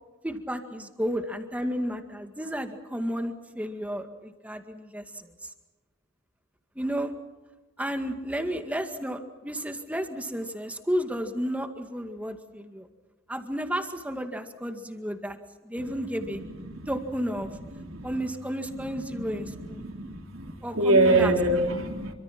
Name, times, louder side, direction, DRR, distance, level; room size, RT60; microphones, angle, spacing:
voice 1, 0.2-5.5 6.8-7.1 7.8-12.9 13.3-15.4 15.6-16.4 16.9-17.5 18.0-19.8 20.6-21.3, equal, 5° right, 6 dB, 2.0 m, -32 dB
voice 2, 17.7-18.1 19.1-22.1, right 2 dB, 80° right, 4 dB, 3.6 m, -25 dB
27.0 x 25.0 x 6.0 m, 1.2 s
head